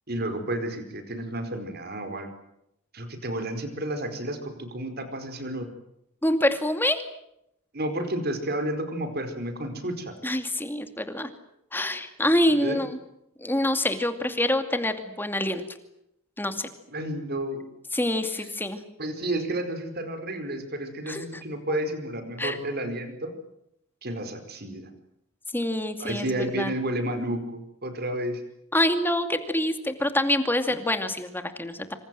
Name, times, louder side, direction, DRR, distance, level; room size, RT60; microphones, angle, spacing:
voice 1, 0.1-2.3 2.9-5.7 7.7-10.1 12.5-12.8 16.9-17.6 18.4-18.5 19.0-23.3 24.0-24.9 26.0-28.4, right 1 dB, 50° right, 7 dB, 4.8 m, -31 dB
voice 2, 6.2-7.0 10.2-11.3 11.7-13.0 13.4-15.6 16.4-16.7 17.9-18.8 21.1-21.3 22.4-22.6 25.5-26.3 26.6-26.7 28.7-31.9, left 1 dB, 10° left, 8 dB, 2.5 m, -26 dB
26.5 x 26.0 x 7.7 m, 0.81 s
head